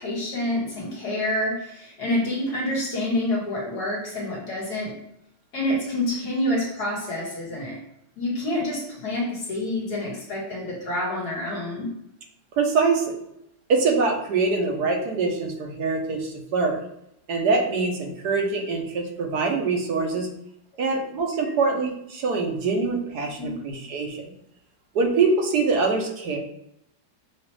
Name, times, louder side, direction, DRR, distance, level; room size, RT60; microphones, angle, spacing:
voice 1, 0.0-4.9 5.5-7.8 8.2-11.9 21.4-21.5 23.4-23.6, left 1 dB, 60° left, -4 dB, 1.9 m, -27 dB
voice 2, 12.6-13.1 13.7-16.8 17.3-20.3 20.8-24.2 24.9-26.4, right 4 dB, 65° right, 2 dB, 1.3 m, -24 dB
5.9 x 2.5 x 3.2 m, 0.77 s
omnidirectional pair, 2.0 m